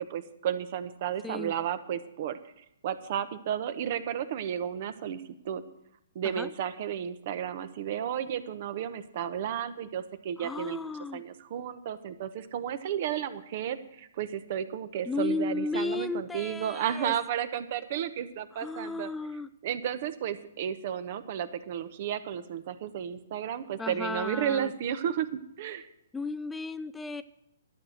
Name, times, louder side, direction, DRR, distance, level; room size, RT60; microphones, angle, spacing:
voice 1, 0.0-2.4 2.8-5.6 6.1-19.1 19.6-25.9, right 9 dB, 45° right, 13 dB, 0.9 m, -33 dB
voice 2, 10.4-11.2 15.1-17.1 18.5-19.5 23.8-24.7 26.1-27.2, left 3 dB, 10° left, 12 dB, 0.4 m, -34 dB
12.0 x 6.4 x 8.9 m, 0.79 s
figure-of-eight pair, 125°, 0 cm